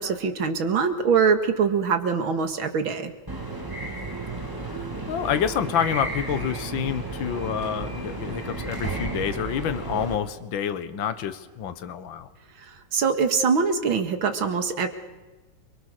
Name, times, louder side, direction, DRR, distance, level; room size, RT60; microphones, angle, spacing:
voice 1, 0.0-3.1 12.6-14.9, right 5 dB, 75° right, 7 dB, 2.7 m, -23 dB
Train Whistle, 3.3-10.1, right 3 dB, 10° right, 3.2 m, -33 dB
voice 2, 5.1-12.3, left 9 dB, 70° left, 12 dB, 1.9 m, -28 dB
28.5 x 23.5 x 6.7 m, 1.2 s
omnidirectional pair, 2.2 m